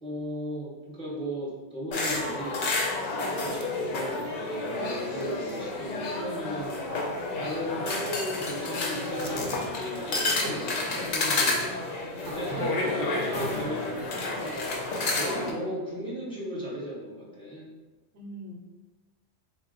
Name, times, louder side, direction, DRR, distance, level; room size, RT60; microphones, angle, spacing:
voice 1, 0.0-2.7 3.3-6.7 7.4-11.8 12.3-14.7 15.1-17.7, equal, 5° left, -6 dB, 0.7 m, -36 dB
sound 1, 1.9-15.5, left 2 dB, 60° left, 0.7 m, -30 dB
Human voice, 4.6-5.4 5.7-8.1 8.5-9.7 10.1-11.9 12.1-12.5, left 3 dB, 90° left, 0.9 m, -43 dB
voice 2, 12.3-12.8 18.1-18.7, right 3 dB, 70° right, 0 dB, 0.8 m, -41 dB
3.9 x 2.0 x 3.8 m, 1.2 s
omnidirectional pair, 1.2 m